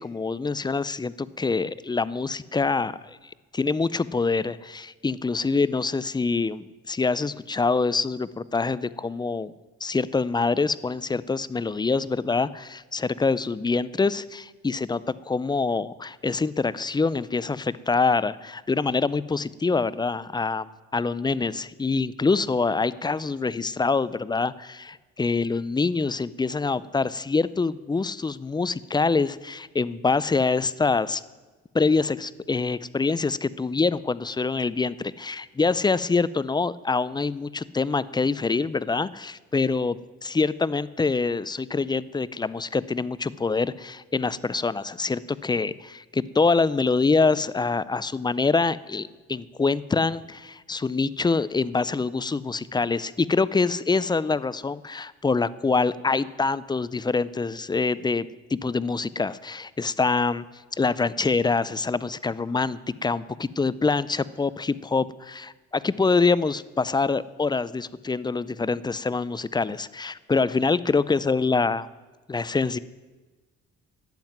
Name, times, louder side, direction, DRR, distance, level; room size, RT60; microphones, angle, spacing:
voice 1, 0.0-3.2 3.5-9.5 9.8-31.2 31.7-60.4 60.8-71.8 72.3-72.8, left 4 dB, 15° left, 18 dB, 0.4 m, -25 dB
12.0 x 7.7 x 9.3 m, 1.2 s
cardioid pair, 90°, 30 cm